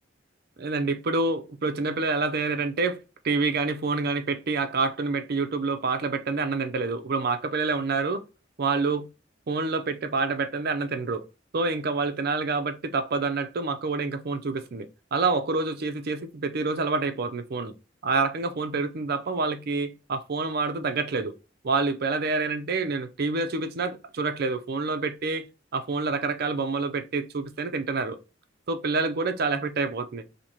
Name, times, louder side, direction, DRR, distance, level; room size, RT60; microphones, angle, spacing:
voice 1, 0.6-3.0 3.2-8.2 8.6-9.1 9.5-11.2 11.5-17.7 18.0-21.3 21.6-25.5 25.7-28.2 28.7-30.2, right 4 dB, 55° right, 0.5 m, -27 dB
2.8 x 2.8 x 4.4 m
head